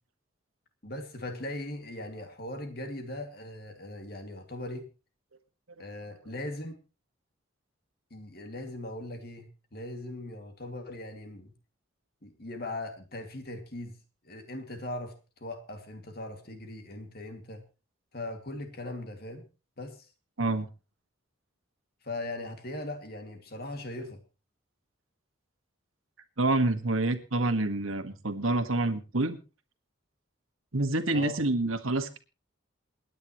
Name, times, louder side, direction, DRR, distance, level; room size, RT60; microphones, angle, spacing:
voice 1, 0.8-4.9 5.8-6.8 8.1-11.5 12.2-14.0 14.2-17.6 18.1-19.5 19.8-20.1 22.0-24.2 31.1-31.4, left 1 dB, 50° left, 5 dB, 2.3 m, -39 dB
voice 2, 26.4-29.4 30.7-32.2, right 2 dB, 90° right, 8 dB, 1.7 m, -27 dB
28.0 x 9.7 x 3.1 m, 0.32 s
head